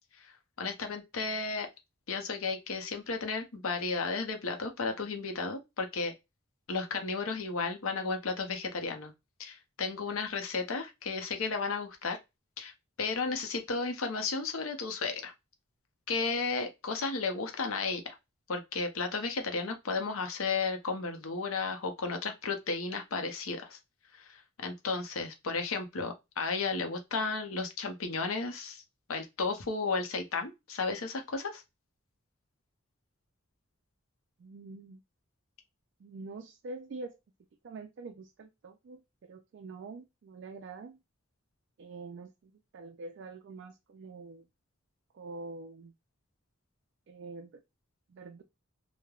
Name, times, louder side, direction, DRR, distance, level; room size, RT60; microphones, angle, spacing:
voice 1, 0.6-1.7 2.1-6.1 6.7-9.1 9.4-12.2 12.6-12.7 13.0-15.3 16.1-18.2 18.5-23.8 24.1-28.8 29.1-31.6, left 4 dB, 85° left, 0.7 m, -33 dB
voice 2, 34.4-35.0 36.0-37.1 37.6-41.0 41.8-44.5 45.1-45.9 47.1-47.6 48.1-48.4, right 3 dB, 60° right, 0.3 m, -45 dB
3.1 x 2.0 x 2.3 m
head